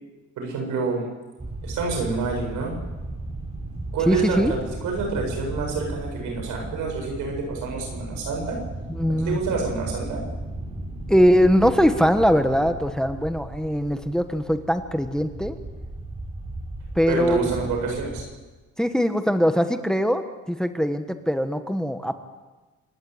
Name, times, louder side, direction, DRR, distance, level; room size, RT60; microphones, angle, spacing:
voice 1, 0.4-1.0 1.6-2.7 3.9-4.6 4.8-8.6 9.1-10.2 17.1-18.2, right 4 dB, 85° right, 1 dB, 7.6 m, -27 dB
sound 1, 1.4-18.2, right 2 dB, 20° right, 3.6 m, -35 dB
voice 2, 4.1-4.5 9.0-9.4 11.1-15.6 16.9-17.5 18.8-22.1, equal, ahead, 8 dB, 1.4 m, -21 dB
26.5 x 11.5 x 9.2 m, 1.2 s
cardioid pair, 90°, 30 cm